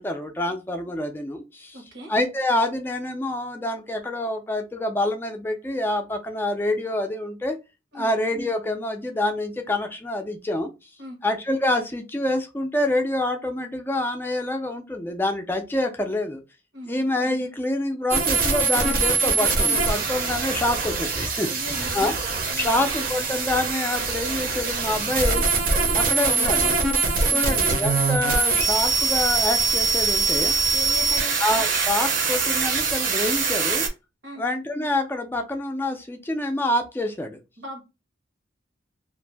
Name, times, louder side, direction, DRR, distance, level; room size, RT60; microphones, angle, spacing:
voice 1, 0.0-1.8 2.1-7.6 7.9-10.7 11.2-16.4 16.9-22.1 22.6-25.4 25.9-26.9 27.3-30.5 31.4-33.9 34.4-37.4, left 1 dB, 10° left, 0.3 m, -26 dB
voice 2, 1.7-2.1 7.9-8.1 11.0-11.2 16.7-17.0 21.5-22.1 22.5-22.8 27.3-27.6 30.7-31.4 34.2-34.4 37.6-37.8, equal, 90° right, 1.1 m, -38 dB
sound 1, 18.1-33.9, right 4 dB, 50° right, 0.6 m, -23 dB
2.5 x 2.0 x 3.2 m
head